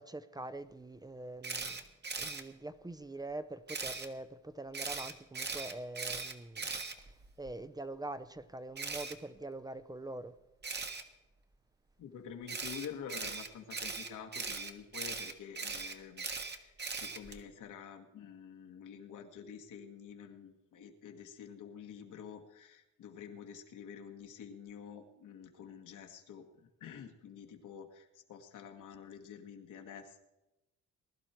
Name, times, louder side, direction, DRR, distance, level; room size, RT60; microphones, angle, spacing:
voice 1, 0.0-1.8 2.2-7.1 7.4-10.4, right 2 dB, 15° right, 0.7 m, -44 dB
Camera, 1.4-2.4 3.7-4.1 4.7-7.5 8.8-9.1 10.6-11.0 12.5-17.4, right 4 dB, 35° right, 1.5 m, -39 dB
voice 2, 12.0-30.2, left 7 dB, 80° left, 1.9 m, -49 dB
20.5 x 11.5 x 4.5 m
cardioid pair, 90°, 30 cm